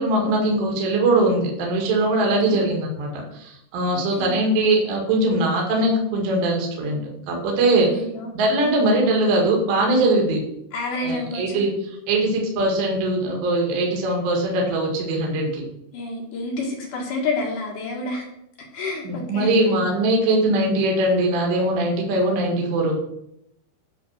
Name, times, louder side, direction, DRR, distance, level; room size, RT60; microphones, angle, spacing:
voice 1, 0.0-7.0 7.3-8.0 8.3-10.4 11.0-15.6 19.0-22.9, right 2 dB, 70° right, -1 dB, 3.9 m, -21 dB
voice 2, 3.9-4.4 7.8-8.8 10.7-11.6 15.9-18.2 18.7-19.5, left 2 dB, 60° left, -1 dB, 2.3 m, -29 dB
10.5 x 4.0 x 6.4 m, 0.79 s
omnidirectional pair, 5.4 m